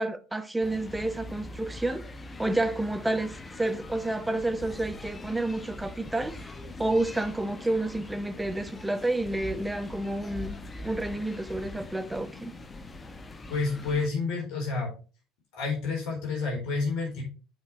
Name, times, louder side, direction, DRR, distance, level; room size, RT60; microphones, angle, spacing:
voice 1, 0.0-2.0 2.4-6.5 6.8-10.6 10.8-12.5, right 2 dB, 10° right, 1.0 m, -30 dB
sound 1, 0.6-14.1, left 2 dB, 20° left, 1.0 m, -42 dB
voice 2, 13.5-14.9 15.5-17.2, left 4 dB, 55° left, 4.1 m, -29 dB
11.0 x 5.6 x 3.2 m
figure-of-eight pair, 65°, 0 cm